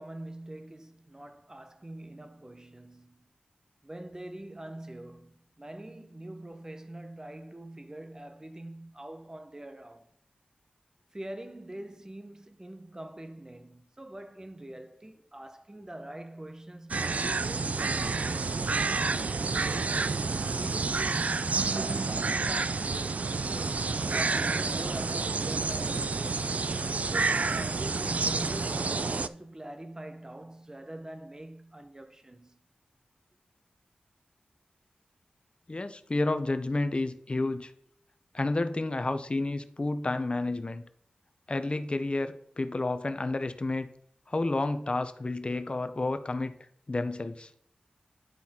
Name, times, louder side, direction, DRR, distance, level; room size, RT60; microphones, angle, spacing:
voice 1, 0.0-3.3 3.8-10.1 11.1-18.3 18.7-20.1 20.4-26.4 27.1-32.6, right 1 dB, 20° right, 0.8 m, -44 dB
sound 1, 16.9-29.3, right 4 dB, 55° right, 0.4 m, -29 dB
voice 2, 35.7-37.7 38.3-40.8 41.5-43.9 44.3-46.5 46.9-47.5, left 2 dB, 35° left, 0.7 m, -30 dB
10.5 x 4.1 x 4.3 m
wide cardioid pair, 60°, 3 cm